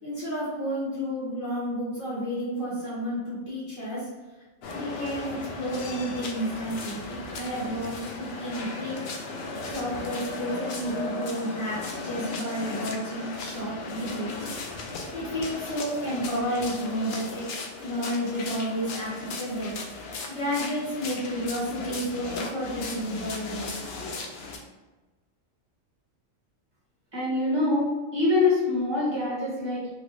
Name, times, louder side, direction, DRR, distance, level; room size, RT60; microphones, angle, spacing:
voice 1, 0.0-4.1 4.7-9.0 9.6-14.4 15.1-17.5 17.8-23.7, equal, 45° left, -9 dB, 1.1 m, -31 dB
sound 1, 4.6-24.6, left 3 dB, 65° left, 0.7 m, -36 dB
voice 2, 27.1-29.9, left 2 dB, 20° right, -8 dB, 1.3 m, -25 dB
3.4 x 2.5 x 2.9 m, 1.2 s
omnidirectional pair, 1.3 m